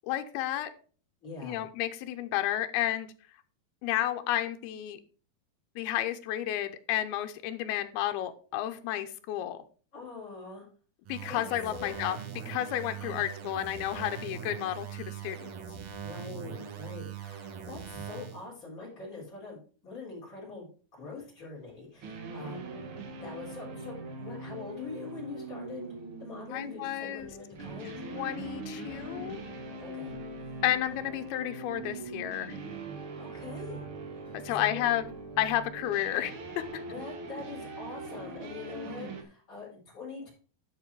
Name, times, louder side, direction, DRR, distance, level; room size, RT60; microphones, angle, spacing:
voice 1, 0.0-0.7 1.4-3.1 3.8-5.0 5.8-9.6 11.1-12.2 12.5-15.5 26.5-27.3 28.1-29.4 30.6-32.6 34.4-35.1 35.4-36.8, left 13 dB, 90° left, 8 dB, 2.7 m, -31 dB
voice 2, 1.2-1.7 9.9-10.7 11.3-11.4 11.7-11.9 13.0-13.3 16.0-22.7 23.2-25.9 26.2-28.0 29.8-30.1 33.2-33.9 34.4-34.9 36.9-40.3, left 4 dB, 20° left, -3 dB, 4.3 m, -43 dB
sound 1, 11.1-18.5, right 8 dB, 60° right, 2.1 m, -41 dB
sound 2, 22.0-39.2, right 3 dB, 80° right, 1.2 m, -42 dB
sound 3, 27.2-36.7, equal, 15° right, 2.8 m, -48 dB
11.5 x 5.2 x 4.7 m, 0.40 s
omnidirectional pair, 4.4 m